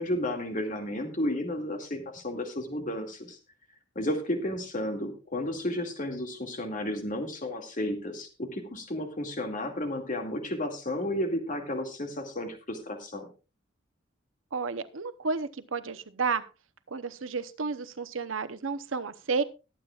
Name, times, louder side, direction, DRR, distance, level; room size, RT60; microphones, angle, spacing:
voice 1, 0.0-3.4 4.0-13.3, left 1 dB, 45° left, 4 dB, 2.3 m, -32 dB
voice 2, 14.5-16.4 16.9-19.4, right 4 dB, 90° right, 13 dB, 0.8 m, -31 dB
21.5 x 8.6 x 2.4 m, 0.30 s
head